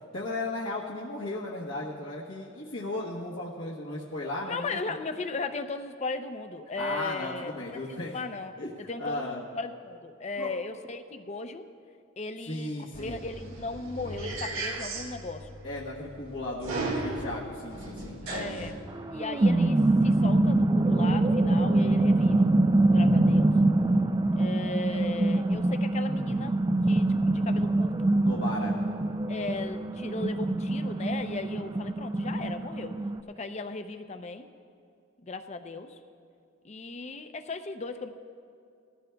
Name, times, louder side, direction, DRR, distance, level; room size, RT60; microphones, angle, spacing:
voice 1, 0.1-4.8 6.8-8.1 8.6-9.4 10.4-10.5 12.4-13.2 15.6-18.2 28.2-28.8, left 2 dB, 75° left, -6 dB, 1.2 m, -35 dB
voice 2, 4.4-8.5 8.9-11.7 12.2-15.6 18.2-18.8 19.1-22.5 22.8-23.6 24.4-26.6 26.9-28.1 29.3-33.0 33.3-34.5 35.2-36.0 36.6-38.1, left 3 dB, 35° left, 8 dB, 0.5 m, -37 dB
sound 1, 12.9-18.7, right 2 dB, 85° right, 1.8 m, -36 dB
sound 2, 18.9-33.2, right 2 dB, 20° right, 0.3 m, -24 dB
20.0 x 14.0 x 2.3 m, 2.4 s
head